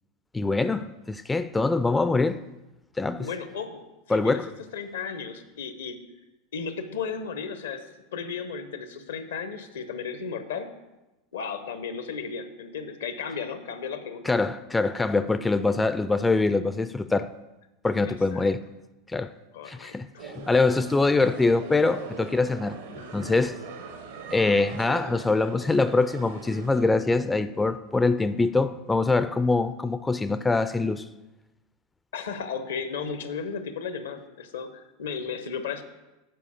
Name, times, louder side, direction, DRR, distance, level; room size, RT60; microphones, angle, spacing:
voice 1, 0.3-2.4 3.0-3.3 4.1-4.5 14.2-17.3 17.8-18.6 19.1-19.3 19.7-22.8 23.1-23.6 24.3-31.1, left 3 dB, 10° left, 0.3 m, -24 dB
voice 2, 3.2-4.4 4.7-6.0 6.5-10.7 11.3-14.3 18.0-18.4 19.5-20.2 32.1-35.8, left 6 dB, 75° left, 0.8 m, -35 dB
sound 1, 20.2-26.9, right 4 dB, 75° right, 1.0 m, -41 dB
7.5 x 4.7 x 6.8 m
hypercardioid pair, 85°, 0 cm